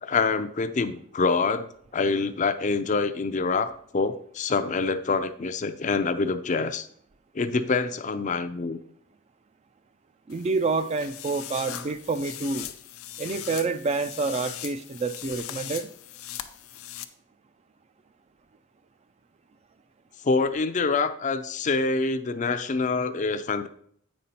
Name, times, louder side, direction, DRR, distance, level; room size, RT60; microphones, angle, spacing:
voice 1, 0.0-6.9 7.3-8.8 20.2-23.7, left 4 dB, 35° left, 0.4 m, -26 dB
sound 1, 10.3-17.0, left 12 dB, 85° left, 0.6 m, -39 dB
voice 2, 10.3-12.7 13.2-15.9, right 4 dB, 30° right, 0.3 m, -28 dB
8.3 x 5.4 x 4.2 m
head